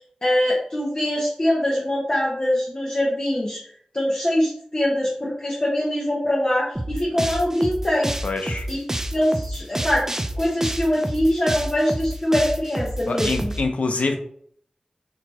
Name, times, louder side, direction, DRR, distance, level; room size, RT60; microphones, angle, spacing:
voice 1, 0.2-3.6 3.9-8.1 8.7-8.8 9.1-10.0 10.4-13.5, left 1 dB, 40° left, -5 dB, 1.0 m, -23 dB
sound 1, 6.8-13.6, right 1 dB, 20° right, 0.5 m, -28 dB
voice 2, 8.2-8.7 13.1-14.2, left 3 dB, 85° left, 5 dB, 0.6 m, -25 dB
5.7 x 2.9 x 2.9 m, 0.62 s
wide cardioid pair, 65°, 2 cm